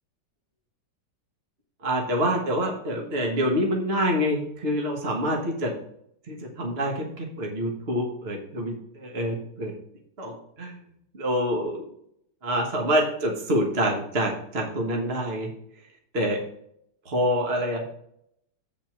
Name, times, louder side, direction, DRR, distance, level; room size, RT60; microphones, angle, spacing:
voice 1, 1.8-5.7 6.3-9.7 10.2-10.8 11.1-11.8 12.4-15.5 16.1-16.4 17.0-17.8, equal, 35° right, 0 dB, 1.4 m, -26 dB
8.1 x 4.7 x 5.9 m, 0.73 s
omnidirectional pair, 2.2 m